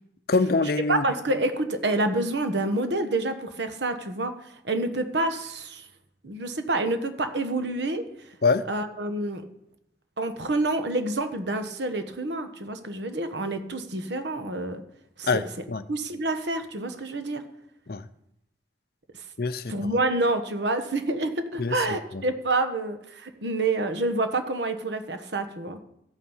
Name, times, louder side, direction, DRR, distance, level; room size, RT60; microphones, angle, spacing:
voice 1, 0.3-1.0 8.4-8.6 15.2-15.8 17.9-18.0 19.4-19.7 21.6-21.8, left 3 dB, 55° left, 13 dB, 0.6 m, -24 dB
voice 2, 0.9-5.9 6.2-8.3 8.7-9.4 10.2-14.8 15.2-15.4 15.9-17.4 19.1-19.2 19.7-25.8, right 2 dB, 70° right, 8 dB, 1.3 m, -28 dB
14.0 x 8.9 x 5.6 m, 0.79 s
head